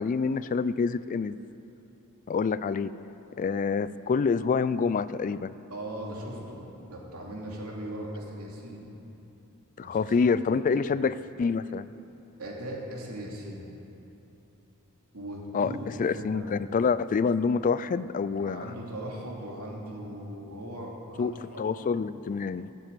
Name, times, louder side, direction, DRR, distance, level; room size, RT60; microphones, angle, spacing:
voice 1, 0.0-1.4 2.3-2.9 3.4-5.5 9.8-11.9 15.5-15.7 16.0-18.7 21.2-22.7, left 5 dB, 35° left, 16 dB, 0.3 m, -27 dB
voice 2, 5.7-8.8 9.8-10.1 10.7-10.8 12.4-13.7 15.1-16.5 18.4-21.9, right 1 dB, 80° right, -2 dB, 2.8 m, -39 dB
14.0 x 7.6 x 8.9 m, 2.9 s
head